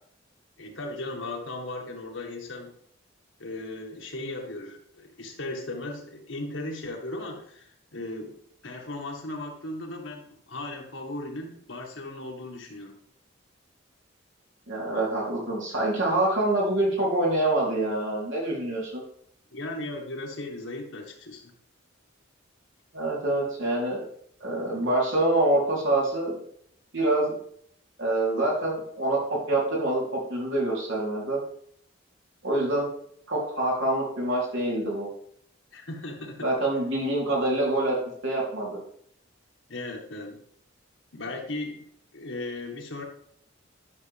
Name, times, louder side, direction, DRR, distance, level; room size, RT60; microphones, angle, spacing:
voice 1, 0.6-2.7 3.4-13.0 19.5-21.5 35.7-36.6 39.7-40.4 41.1-43.0, left 2 dB, 75° left, 1 dB, 1.9 m, -37 dB
voice 2, 14.7-19.0 22.9-24.0 24.4-26.4 26.9-27.3 28.0-31.4 32.4-32.9 33.3-35.1 36.4-38.0 38.2-38.8, right 1 dB, 70° right, -4 dB, 3.7 m, -26 dB
11.0 x 6.7 x 3.6 m, 0.65 s
head